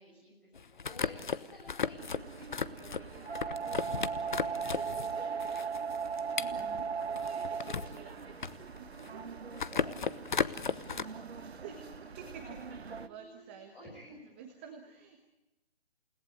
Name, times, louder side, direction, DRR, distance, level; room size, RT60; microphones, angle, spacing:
voice 1, 0.0-5.8 10.4-11.9 12.5-12.6 12.9-14.3, left 1 dB, 5° left, -4 dB, 6.2 m, -55 dB
sound 1, 0.5-5.1 5.4-8.0 8.3-9.2 9.5-11.0, left 6 dB, 50° left, 1.1 m, -35 dB
sound 2, 2.0-13.1, right 6 dB, 80° right, 1.3 m, -39 dB
voice 2, 6.0-8.4 8.8-9.4 11.4-11.8 12.2-14.0 14.3-15.2, right 7 dB, 10° right, 3 dB, 1.2 m, -51 dB
29.0 x 18.5 x 9.3 m, 1.0 s
hypercardioid pair, 170°, 31 cm